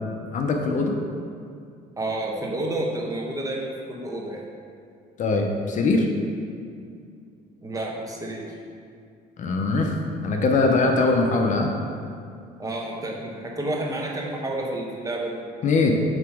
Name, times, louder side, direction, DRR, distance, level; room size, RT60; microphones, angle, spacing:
voice 1, 0.3-1.0 5.2-6.1 9.4-9.9 10.2-11.7 15.6-15.9, left 3 dB, 45° left, 2 dB, 0.6 m, -21 dB
voice 2, 2.0-4.4 7.6-8.5 12.6-15.4, right 1 dB, 20° right, -2 dB, 1.0 m, -30 dB
7.3 x 2.9 x 4.8 m, 2.4 s
cardioid pair, 110°, 17 cm